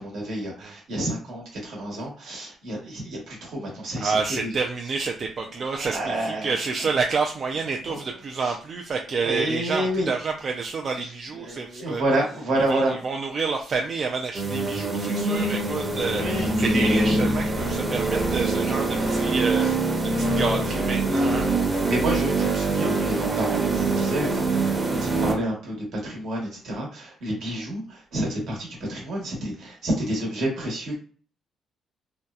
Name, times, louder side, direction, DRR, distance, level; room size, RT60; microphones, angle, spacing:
voice 1, 0.0-4.5 5.7-6.6 7.9-8.0 8.4-8.5 9.2-10.1 11.0-12.9 16.1-16.5 17.1-17.3 21.9-31.0, right 1 dB, 75° right, -1 dB, 1.1 m, -29 dB
voice 2, 4.0-12.0 12.5-19.9 20.2-21.5, right 4 dB, 50° right, 1 dB, 0.3 m, -29 dB
sound 1, 14.4-25.3, right 2 dB, 25° right, 0.7 m, -24 dB
2.7 x 2.1 x 2.3 m, 0.41 s
cardioid pair, 90°, 0 cm